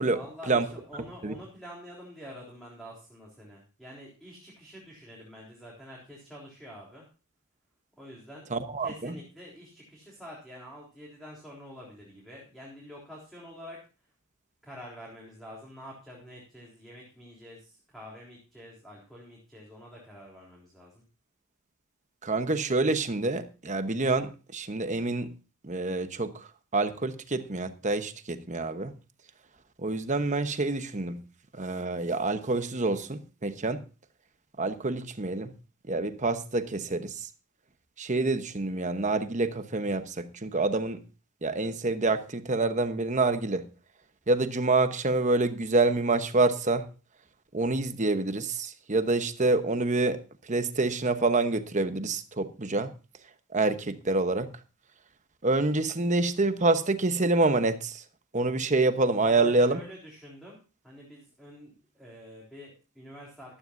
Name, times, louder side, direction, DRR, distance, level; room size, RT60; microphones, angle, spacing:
voice 1, 0.0-7.0 8.0-8.5 8.8-13.8 14.6-21.0 59.2-60.6 60.8-63.6, equal, ahead, 3.6 m, -47 dB
voice 2, 8.5-9.2 22.2-25.3 25.6-26.3 26.7-28.9 29.8-31.2 31.6-33.8 34.6-35.5 35.9-37.1 38.0-41.0 41.4-43.7 44.3-46.9 47.5-50.2 50.5-52.9 53.5-54.5 55.4-58.0 58.3-59.8, right 3 dB, 35° right, 1.0 m, -27 dB
14.5 x 12.5 x 2.6 m
head